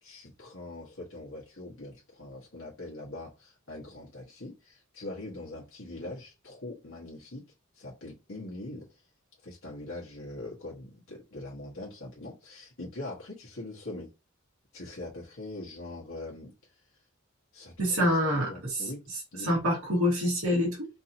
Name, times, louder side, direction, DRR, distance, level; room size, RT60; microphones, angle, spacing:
voice 1, 0.0-7.4 7.7-9.0 9.4-14.1 14.7-16.8 17.5-17.7 18.0-19.0 19.3-19.6, left 2 dB, 65° left, 1.5 m, -42 dB
voice 2, 17.8-18.5 19.4-20.9, equal, 85° right, 2.2 m, -26 dB
4.6 x 2.8 x 2.8 m
head